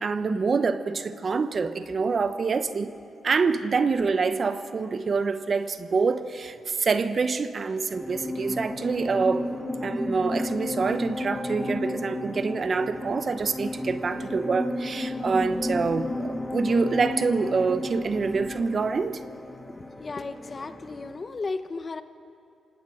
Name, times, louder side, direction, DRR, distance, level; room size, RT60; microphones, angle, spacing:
voice 1, 0.0-2.9 3.2-9.5 9.8-19.2, right 4 dB, 45° right, 11 dB, 1.0 m, -26 dB
sound 1, 7.9-21.3, left 1 dB, 10° left, 1.5 m, -33 dB
voice 2, 20.0-22.0, left 3 dB, 40° left, 10 dB, 1.0 m, -34 dB
27.5 x 17.5 x 6.4 m, 2.5 s
cardioid pair, 75°, 0 cm